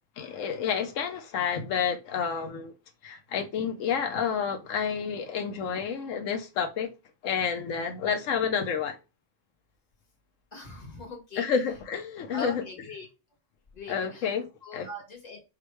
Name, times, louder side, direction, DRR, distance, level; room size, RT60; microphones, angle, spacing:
voice 1, 0.2-2.7 3.0-6.9 7.2-9.0 11.4-12.6 13.9-14.5 14.7-14.9, left 7 dB, 85° left, 1.0 m, -29 dB
voice 2, 10.5-11.5 12.3-13.1 13.7-14.3 14.6-15.4, left 2 dB, 35° left, 1.4 m, -41 dB
4.9 x 2.5 x 3.0 m
omnidirectional pair, 1.3 m